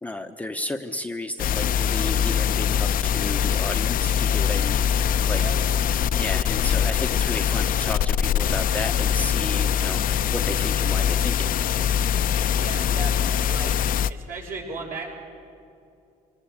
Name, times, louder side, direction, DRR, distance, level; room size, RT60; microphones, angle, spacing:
voice 1, 0.0-5.4 6.1-11.5, left 1 dB, 10° left, 5 dB, 0.9 m, -33 dB
sound 1, 1.4-14.1, left 8 dB, 55° left, 0.6 m, -23 dB
voice 2, 5.3-5.8 12.5-13.8 14.1-15.1, right 4 dB, 55° right, 0 dB, 6.8 m, -36 dB
25.0 x 19.0 x 8.4 m, 2.6 s
cardioid pair, 110°, 17 cm